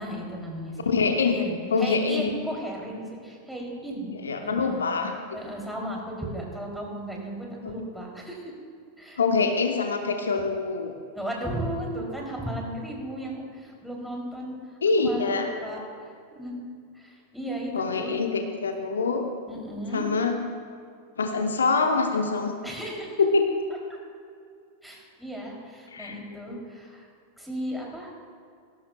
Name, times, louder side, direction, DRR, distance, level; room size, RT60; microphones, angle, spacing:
voice 1, 0.0-4.1 4.4-4.9 5.3-8.5 9.0-9.2 11.1-14.5 15.0-15.8 16.3-16.6 16.9-18.1 19.5-20.1 22.6-23.2 24.8-27.1 27.4-28.2, right 1 dB, ahead, -2 dB, 3.1 m, -35 dB
voice 2, 0.8-1.4 1.7-2.3 4.1-5.1 7.6-7.7 9.2-10.9 14.8-15.5 17.7-19.2 19.9-20.4 21.2-22.5 23.2-23.4 25.9-26.2, left 4 dB, 70° left, 4 dB, 1.0 m, -25 dB
19.0 x 16.5 x 2.3 m, 2.3 s
figure-of-eight pair, 90°, 0 cm